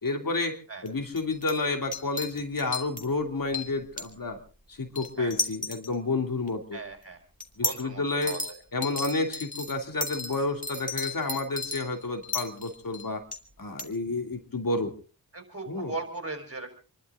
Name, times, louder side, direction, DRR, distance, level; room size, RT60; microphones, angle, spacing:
voice 1, 0.0-0.6 0.8-4.4 4.7-6.8 7.6-8.4 8.7-13.2 13.6-14.9 15.7-15.9, left 3 dB, 60° left, 5 dB, 2.8 m, -30 dB
sound 1, 0.9-1.0 1.2-1.5 1.9-3.1 3.5-4.1 5.0-6.0 6.5-6.6 7.4-7.8 8.2-8.5 8.8-13.4 13.8-13.9, left 2 dB, 20° left, 2.4 m, -33 dB
voice 2, 6.7-7.2 7.6-8.6 15.3-16.7, right 3 dB, 40° right, 5 dB, 4.9 m, -38 dB
28.0 x 12.0 x 3.7 m, 0.37 s
wide cardioid pair, 65°, 37 cm